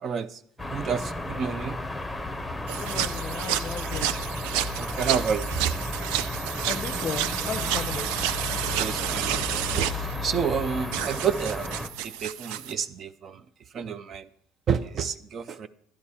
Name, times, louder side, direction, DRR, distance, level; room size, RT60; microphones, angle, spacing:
voice 1, 0.0-1.8 4.8-5.7 8.8-11.8 12.0-13.4 13.7-14.3 14.7-15.7, right 7 dB, 35° right, 0.5 m, -30 dB
sound 1, 0.6-11.9, left 2 dB, 5° left, 0.8 m, -33 dB
sound 2, 2.7-12.7, right 11 dB, 85° right, 0.5 m, -31 dB
voice 2, 2.8-4.4 6.7-8.4, left 7 dB, 35° left, 0.6 m, -36 dB
11.5 x 11.5 x 4.3 m
cardioid pair, 145°, 0 cm